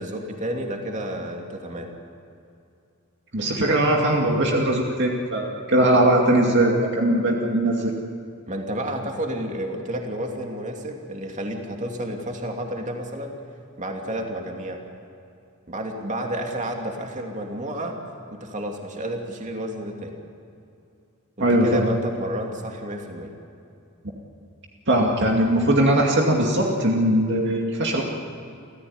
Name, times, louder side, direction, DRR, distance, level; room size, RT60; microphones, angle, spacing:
voice 1, 0.0-1.9 8.5-13.3 13.8-14.8 15.7-17.9 18.3-20.1 21.4-23.3, right 1 dB, 35° right, 2 dB, 2.8 m, -31 dB
voice 2, 3.3-7.9 21.4-21.9 24.9-28.0, right 1 dB, 55° right, 0 dB, 2.3 m, -20 dB
29.5 x 14.5 x 9.7 m, 2.6 s
head